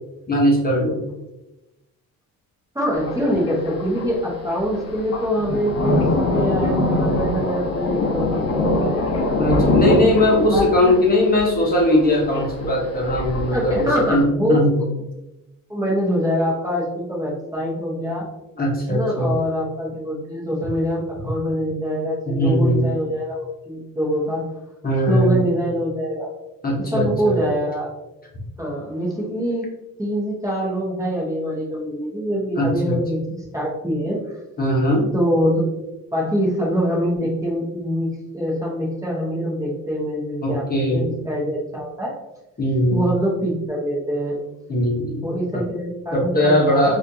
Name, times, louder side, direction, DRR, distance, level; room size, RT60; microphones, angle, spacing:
voice 1, 0.3-1.0 9.4-14.7 18.6-19.3 22.3-22.9 24.8-25.4 26.6-27.4 32.6-33.0 34.6-35.1 40.4-41.1 42.6-43.1 44.7-45.2 46.1-47.0, left 1 dB, 25° left, -2 dB, 1.0 m, -19 dB
voice 2, 2.7-9.7 10.5-10.9 13.5-14.6 15.7-18.3 18.9-24.4 25.1-26.3 26.9-27.9 28.6-29.7 30.0-34.2 35.1-35.7 36.1-40.6 40.9-42.1 42.9-44.4 45.2-47.0, equal, 10° right, -4 dB, 1.0 m, -24 dB
Thunder, 2.9-14.2, left 2 dB, 45° left, 0.7 m, -24 dB
4.2 x 2.6 x 2.7 m, 0.96 s
cardioid pair, 125°, 35 cm